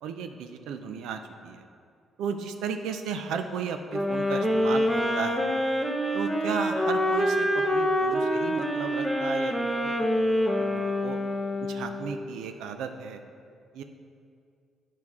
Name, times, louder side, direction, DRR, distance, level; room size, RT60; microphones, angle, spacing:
voice 1, 0.0-1.7 2.2-5.5 6.1-11.2 11.6-13.2 13.7-13.8, right 6 dB, 90° right, 7 dB, 0.5 m, -35 dB
sound 1, 3.9-12.1, equal, 10° right, 0.9 m, -26 dB
9.7 x 4.6 x 3.6 m, 2.3 s
cardioid pair, 90°, 0 cm